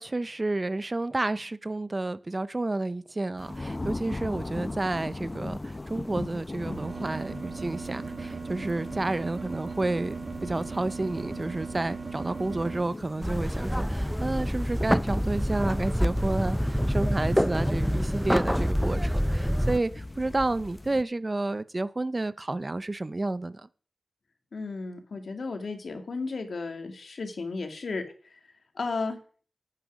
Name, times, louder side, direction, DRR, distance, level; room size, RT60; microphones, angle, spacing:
voice 1, 0.0-10.2 10.4-23.7, right 2 dB, 40° right, 0.7 m, -30 dB
sound 1, 3.4-21.0, left 2 dB, 35° left, 0.8 m, -40 dB
sound 2, 6.6-12.8, right 4 dB, 65° right, 1.6 m, -37 dB
sound 3, 13.2-19.8, equal, ahead, 0.6 m, -26 dB
voice 2, 24.5-28.4 28.7-29.2, left 3 dB, 80° left, 2.3 m, -34 dB
9.6 x 9.2 x 6.3 m
cardioid pair, 50°, 0 cm